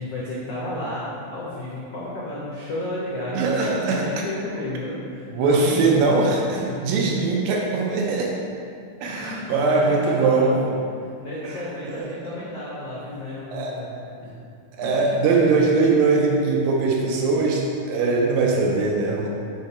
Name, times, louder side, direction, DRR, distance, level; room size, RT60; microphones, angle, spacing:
voice 1, 0.0-6.3 6.6-6.8 9.0-10.9 11.2-14.0 14.2-14.3 14.8-15.2 15.5-15.6, left 1 dB, 80° left, -7 dB, 1.4 m, -32 dB
voice 2, 3.3-4.1 5.3-8.3 9.0-10.6 11.9-12.1 13.5-13.8 14.7-19.3, right 3 dB, 80° right, -1 dB, 2.2 m, -21 dB
6.5 x 5.0 x 4.2 m, 2.4 s
omnidirectional pair, 4.4 m